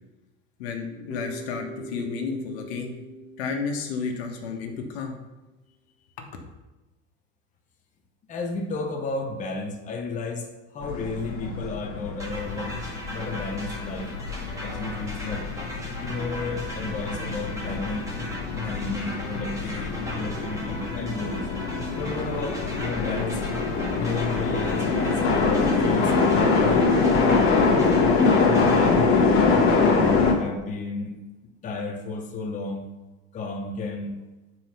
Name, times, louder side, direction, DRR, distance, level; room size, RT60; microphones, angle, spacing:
voice 1, 0.6-2.9 3.4-5.2 6.2-6.3, left 5 dB, 80° left, 3 dB, 1.5 m, -32 dB
Bass guitar, 1.1-5.2, right 2 dB, 60° right, 1.9 m, -42 dB
voice 2, 8.3-14.1 14.6-15.5 16.0-18.2 18.5-21.5 21.9-23.4 23.9-26.9 28.4-31.2 31.6-32.9 33.3-34.1, left 3 dB, 25° left, 2 dB, 1.0 m, -32 dB
sound 1, 10.8-30.3, left 4 dB, 45° left, 1.8 m, -24 dB
sound 2, 12.2-28.9, equal, 10° right, 1.7 m, -38 dB
7.7 x 4.6 x 6.0 m, 1.1 s
supercardioid pair, 140°, 31 cm